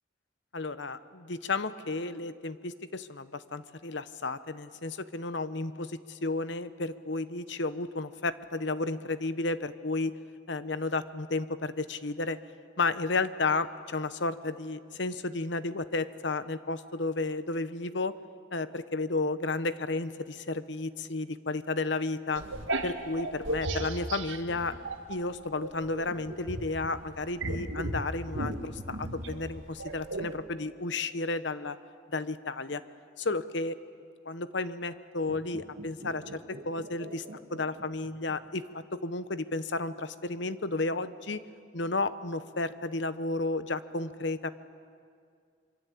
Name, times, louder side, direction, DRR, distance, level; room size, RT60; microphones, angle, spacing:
voice 1, 0.5-10.1 10.5-12.4 12.8-18.1 18.5-22.4 22.8-24.7 25.1-31.8 32.1-32.8 33.2-33.8 34.2-37.2 37.5-41.4 41.7-44.5, left 3 dB, 65° left, 13 dB, 1.0 m, -32 dB
sound 1, 22.4-25.2 25.6-30.4, right 2 dB, 85° right, 2.0 m, -35 dB
sound 2, 35.2-38.6 38.8-38.9, right 1 dB, 55° right, 2.3 m, -46 dB
26.0 x 24.0 x 8.4 m, 2.2 s
head